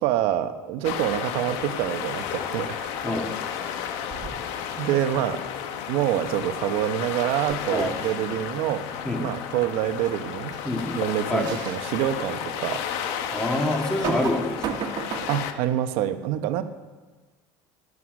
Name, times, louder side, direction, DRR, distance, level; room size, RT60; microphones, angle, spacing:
voice 1, 0.0-2.9 4.8-5.4 5.9-8.8 9.2-10.5 10.9-12.8 15.3-16.6, right 12 dB, 65° right, 9 dB, 1.0 m, -26 dB
sound 1, 0.8-15.5, left 8 dB, 70° left, 1.2 m, -33 dB
sound 2, 4.1-4.6 7.5-8.2 10.0-10.1 10.5-10.7 11.4-11.8 12.4-12.5 13.8-15.5, right 7 dB, 45° right, 1.7 m, -33 dB
voice 2, 13.3-14.8, left 1 dB, 5° left, 2 dB, 1.8 m, -26 dB
16.0 x 11.0 x 6.4 m, 1.3 s
cardioid pair, 155°, 10 cm